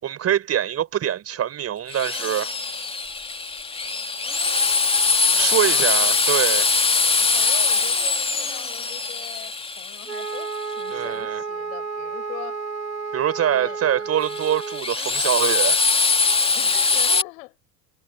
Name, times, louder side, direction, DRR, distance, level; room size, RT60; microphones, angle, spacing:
voice 1, 0.0-2.5 5.3-6.7 10.9-11.4 13.1-15.8, right 10 dB, 30° right, 5.1 m, -24 dB
Drill, 1.9-10.8 14.2-17.2, left 4 dB, 10° left, 2.4 m, -22 dB
voice 2, 5.3-5.9 7.3-12.7 13.4-13.8 16.5-17.6, left 21 dB, 55° left, 6.2 m, -41 dB
Wind instrument woodwind instrument, 10.0-14.9, right 4 dB, 80° right, 3.1 m, -31 dB
figure-of-eight pair, 80°, 49 cm